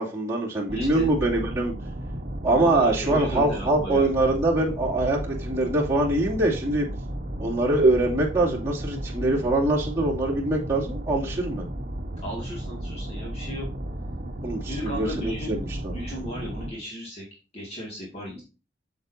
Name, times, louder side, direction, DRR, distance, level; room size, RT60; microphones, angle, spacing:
voice 1, 0.0-1.7 2.4-6.9 7.4-11.7 14.4-15.9, right 2 dB, 15° right, -6 dB, 2.6 m, -24 dB
voice 2, 0.7-1.1 2.5-4.1 12.2-13.7 14.6-15.5 15.9-17.2 17.5-18.4, equal, 35° left, -3 dB, 2.2 m, -35 dB
sound 1, 0.7-16.7, right 1 dB, 45° right, 1.2 m, -34 dB
8.5 x 6.8 x 2.7 m, 0.33 s
head